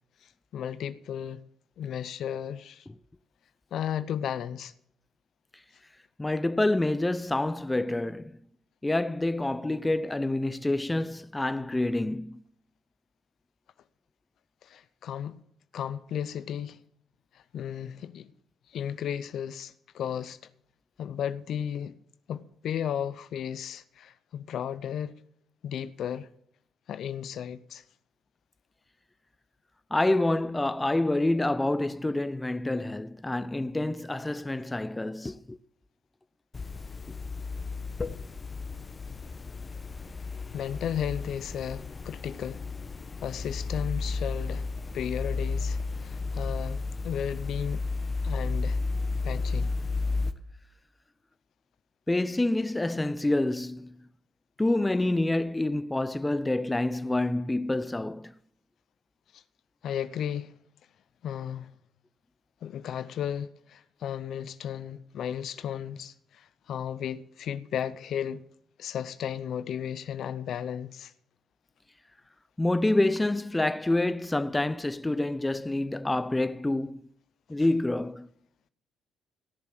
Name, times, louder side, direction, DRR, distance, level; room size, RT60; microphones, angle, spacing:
voice 1, 0.5-1.4 1.8-2.9 3.7-4.7 14.6-15.4 15.7-16.8 17.3-18.3 18.7-20.4 21.0-22.0 22.3-25.1 25.6-26.3 26.9-27.8 40.5-42.7 43.2-44.7 44.9-47.8 48.2-48.8 49.2-49.7 59.3-59.4 59.8-60.5 61.2-61.7 62.6-68.4 68.8-71.1, left 9 dB, 70° left, 0.6 m, -34 dB
voice 2, 6.2-8.4 8.8-12.4 29.9-35.6 52.1-54.0 54.6-58.3 72.6-77.0 77.5-78.3, left 2 dB, 15° left, 0.6 m, -27 dB
sound 1, 36.5-50.3, left 3 dB, 35° left, 1.1 m, -33 dB
17.0 x 7.3 x 6.1 m
supercardioid pair, 55°, 0 cm